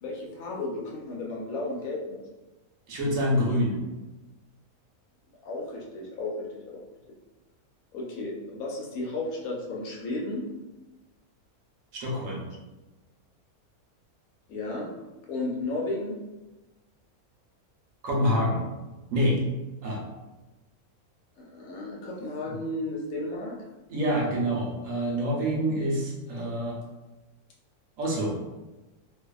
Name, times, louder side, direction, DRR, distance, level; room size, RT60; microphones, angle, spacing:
voice 1, 0.0-2.2 5.4-6.8 7.9-10.5 14.5-14.9 15.3-16.2 21.4-23.6, left 2 dB, 70° left, -2 dB, 1.1 m, -33 dB
voice 2, 2.9-3.8 11.9-12.4 18.0-18.6 19.1-19.4 19.8-20.0 22.5-22.6 23.9-26.8 28.0-28.3, equal, 65° right, -3 dB, 1.0 m, -26 dB
2.6 x 2.4 x 2.3 m, 1.1 s
omnidirectional pair, 1.6 m